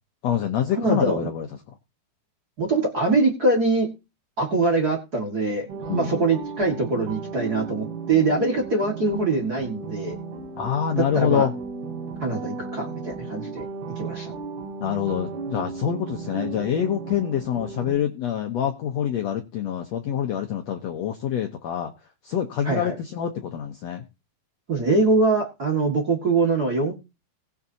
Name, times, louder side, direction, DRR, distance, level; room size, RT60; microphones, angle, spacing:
voice 1, 0.2-1.5 5.8-6.2 10.6-11.5 14.8-21.9 22.2-24.0, left 9 dB, 90° left, 4 dB, 1.5 m, -26 dB
voice 2, 0.8-1.3 2.6-3.9 4.4-10.1 11.1-11.5 12.2-13.6 14.0-14.3 22.6-22.9 24.7-26.9, right 3 dB, 35° right, 0 dB, 1.6 m, -23 dB
sound 1, 5.7-17.9, right 4 dB, 85° right, 4.4 m, -35 dB
19.5 x 7.4 x 2.8 m, 0.28 s
omnidirectional pair, 4.4 m